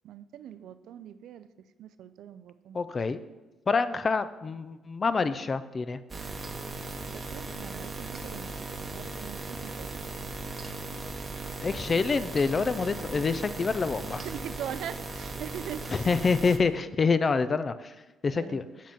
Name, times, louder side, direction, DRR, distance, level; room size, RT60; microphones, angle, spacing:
voice 1, 0.0-1.5 1.8-2.8 7.1-10.0 14.2-16.1 18.3-18.7, right 10 dB, 80° right, 13 dB, 0.3 m, -42 dB
voice 2, 2.7-3.2 3.7-6.0 11.6-14.2 15.9-17.9 18.2-18.6, left 4 dB, 35° left, 13 dB, 0.3 m, -27 dB
sound 1, 6.1-16.6, right 3 dB, 30° right, 0.8 m, -38 dB
7.3 x 3.7 x 5.7 m, 1.1 s
cardioid pair, 90°, 0 cm